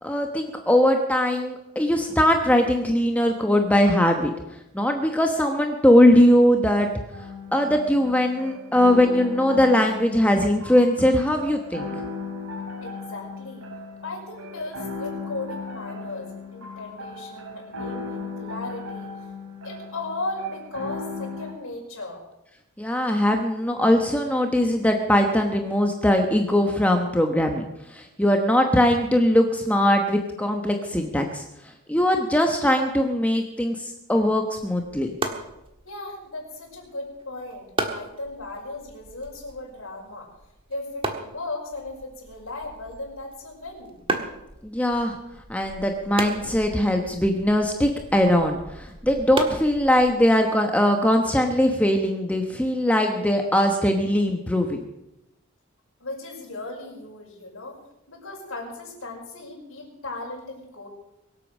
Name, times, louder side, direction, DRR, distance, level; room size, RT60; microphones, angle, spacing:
voice 1, 0.0-4.3 4.7-6.9 7.5-11.9 22.8-31.4 31.9-35.1 44.6-45.2 45.5-54.8, left 1 dB, 5° left, 3 dB, 1.0 m, -21 dB
sound 1, 7.1-21.5, left 3 dB, 85° right, 3.3 m, -36 dB
voice 2, 12.8-13.7 14.0-19.1 19.6-22.2 35.8-40.3 40.7-44.0 56.0-57.8 58.1-60.9, left 2 dB, 65° left, -3 dB, 5.5 m, -36 dB
sound 2, 34.5-50.4, right 2 dB, 25° right, 1.5 m, -36 dB
23.0 x 8.3 x 6.3 m, 0.90 s
head